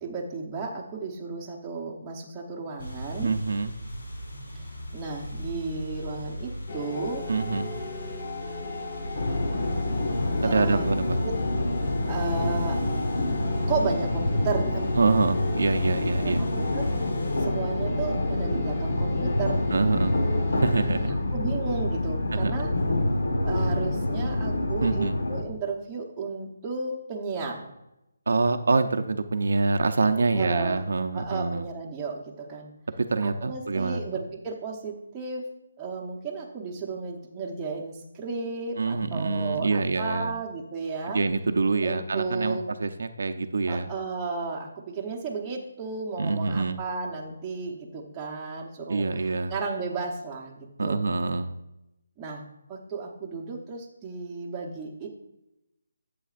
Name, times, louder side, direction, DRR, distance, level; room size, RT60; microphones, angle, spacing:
voice 1, 0.0-3.4 4.5-4.6 4.9-7.3 10.4-10.8 11.2-11.3 12.1-12.8 13.7-14.9 16.1-16.9 17.4-19.6 21.0-22.7 23.4-27.7 30.3-30.8 31.1-32.7 33.2-35.5 35.8-41.2 41.8-42.6 43.7-49.1 49.5-51.0 52.2-52.4 52.7-55.1, right 4 dB, 10° right, -3 dB, 0.9 m, -33 dB
sound 1, 2.8-17.5, equal, 85° left, 2.6 m, -39 dB
voice 2, 3.2-3.7 7.3-7.7 10.4-11.2 15.0-16.4 19.7-20.2 20.5-21.1 22.3-22.5 24.8-25.2 28.3-31.6 33.0-34.0 38.8-40.3 41.1-43.9 46.2-46.8 48.9-49.5 50.8-51.5, right 3 dB, 65° right, 7 dB, 0.6 m, -25 dB
sound 2, 6.7-21.5, left 3 dB, 30° left, 0.7 m, -38 dB
sound 3, 9.1-25.4, left 1 dB, 70° left, 1.3 m, -27 dB
11.0 x 7.9 x 2.5 m, 0.89 s
hypercardioid pair, 175°, 0 cm